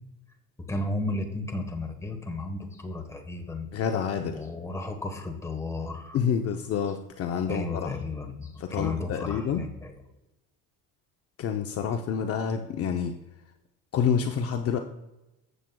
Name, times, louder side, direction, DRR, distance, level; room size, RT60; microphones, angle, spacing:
voice 1, 0.6-3.7 4.3-6.2 7.5-9.9, left 2 dB, 10° left, 3 dB, 1.2 m, -33 dB
voice 2, 3.7-4.4 6.1-7.9 8.6-9.6 11.4-13.2 13.9-14.8, left 7 dB, 45° left, 5 dB, 0.6 m, -28 dB
14.5 x 7.6 x 2.2 m, 0.95 s
cardioid pair, 150°, 33 cm